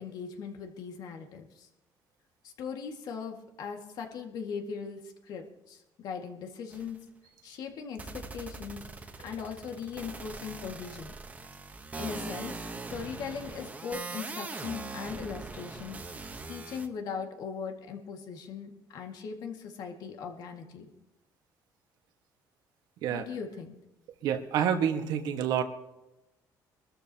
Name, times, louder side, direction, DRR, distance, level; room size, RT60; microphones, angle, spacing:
voice 1, 0.0-1.7 2.4-7.0 7.4-8.8 9.2-11.1 11.9-12.5 12.9-20.9 23.1-23.7, left 6 dB, 65° left, 3 dB, 2.1 m, -39 dB
sound 1, 6.7-7.0 8.0-16.9, right 3 dB, 20° right, 1.1 m, -41 dB
voice 2, 24.2-25.6, right 8 dB, 75° right, 6 dB, 1.6 m, -28 dB
23.5 x 13.5 x 3.0 m, 0.95 s
cardioid pair, 130°, 7 cm